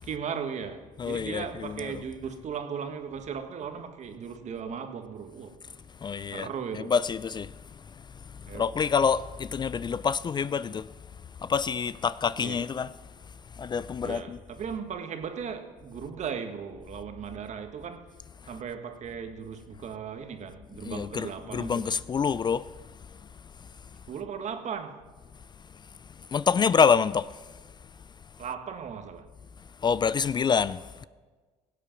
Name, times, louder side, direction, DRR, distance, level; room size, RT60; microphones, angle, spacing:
voice 1, 0.0-5.6 6.3-7.0 8.5-8.8 12.4-12.7 14.0-18.1 18.5-22.0 24.1-25.0 28.4-29.3, right 7 dB, 50° right, 1.4 m, -37 dB
voice 2, 1.0-1.9 6.0-6.5 6.7-7.5 8.5-10.9 11.4-12.9 13.6-14.4 20.8-22.6 26.3-27.3 29.8-31.1, left 6 dB, 30° left, 0.3 m, -26 dB
17.0 x 8.4 x 5.8 m
supercardioid pair, 90°, 15 cm